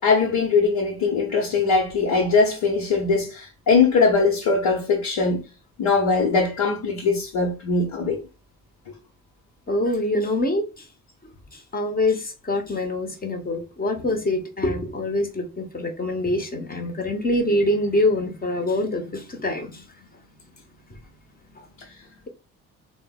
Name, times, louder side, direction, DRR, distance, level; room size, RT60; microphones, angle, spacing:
voice 1, 0.0-5.4 5.8-8.2, left 4 dB, 60° left, 1.1 m, -21 dB
voice 2, 9.7-10.8 11.5-19.8 21.6-21.7, left 1 dB, 20° left, 1.1 m, -25 dB
3.7 x 2.1 x 3.7 m
figure-of-eight pair, 45°, 40 cm